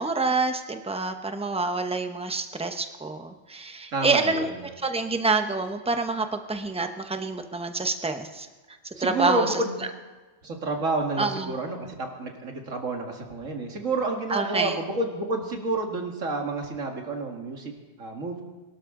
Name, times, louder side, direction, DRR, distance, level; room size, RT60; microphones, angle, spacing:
voice 1, 0.0-9.9 11.2-11.6 14.3-14.8, right 3 dB, 5° right, 7 dB, 0.7 m, -27 dB
voice 2, 3.9-4.5 9.0-9.7 10.4-17.7 18.0-18.4, right 3 dB, 85° right, 2 dB, 2.3 m, -29 dB
22.5 x 12.5 x 3.8 m, 1.3 s
omnidirectional pair, 1.3 m